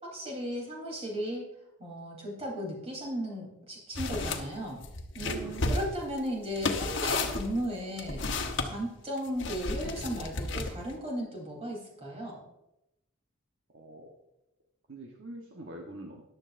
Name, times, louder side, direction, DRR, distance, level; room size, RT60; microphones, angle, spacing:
voice 1, 0.0-1.5 1.8-4.8 5.2-8.2 8.6-12.4, equal, 30° right, -1 dB, 3.6 m, -36 dB
sound 1, 3.9-4.4 4.8-8.7 9.4-10.9, left 3 dB, 65° left, 1.1 m, -32 dB
voice 2, 5.2-5.8 13.7-14.1 14.9-16.2, right 1 dB, 65° right, 0 dB, 1.2 m, -43 dB
14.5 x 11.0 x 2.6 m, 0.88 s
head